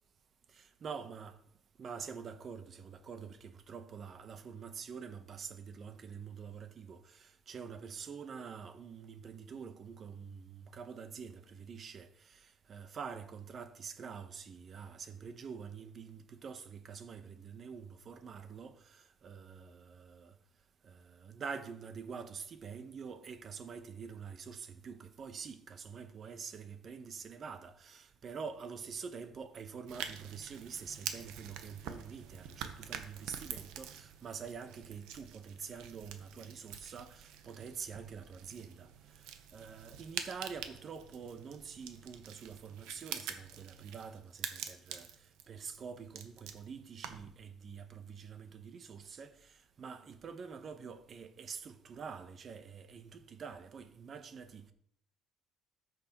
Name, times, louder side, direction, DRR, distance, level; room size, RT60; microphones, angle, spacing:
voice 1, 0.8-1.4 1.8-20.4 20.8-39.2 39.5-54.7, right 6 dB, 45° right, 0.9 m, -46 dB
sound 1, 29.9-47.4, right 9 dB, 85° right, 0.8 m, -46 dB
13.5 x 6.3 x 3.0 m
cardioid pair, 100°, 0 cm